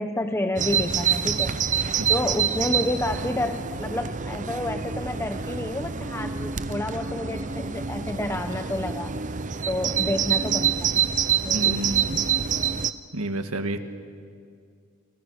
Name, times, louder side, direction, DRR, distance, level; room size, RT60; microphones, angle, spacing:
voice 1, 0.0-1.5 2.1-9.1 9.7-10.9 11.4-11.8, left 1 dB, 10° left, 6 dB, 0.9 m, -29 dB
Bird vocalization bird call bird song, 0.6-12.9, right 7 dB, 35° right, 0.7 m, -26 dB
voice 2, 11.5-12.2 13.1-13.8, right 1 dB, 80° right, 8 dB, 1.8 m, -29 dB
30.0 x 28.5 x 6.5 m, 2.2 s
head